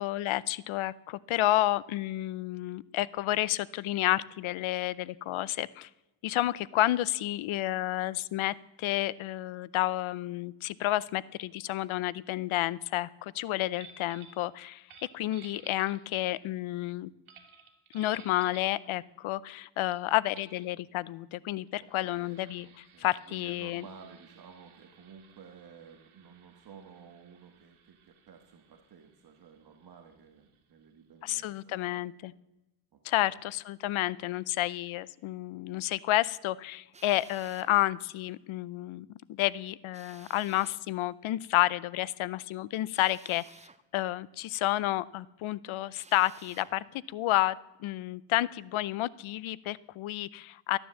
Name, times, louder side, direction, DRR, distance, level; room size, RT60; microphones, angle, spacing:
voice 1, 0.0-5.9 6.2-14.9 15.1-17.1 17.9-23.8 31.2-32.3 33.0-43.4 43.9-50.8, left 15 dB, 75° left, 21 dB, 0.6 m, -30 dB
sound 1, 13.8-14.4 14.8-16.3 17.3-18.7 19.9-20.0 20.3-20.6 21.6-30.9, right 6 dB, 80° right, 2.4 m, -57 dB
voice 2, 21.8-32.0 32.9-33.3, right 6 dB, 50° right, 4 dB, 1.5 m, -53 dB
Drill, 36.9-37.7 39.9-40.8 42.9-43.8 45.9-46.7, right 4 dB, 15° right, 0.5 m, -55 dB
14.0 x 9.9 x 7.5 m, 0.97 s
cardioid pair, 150°, 48 cm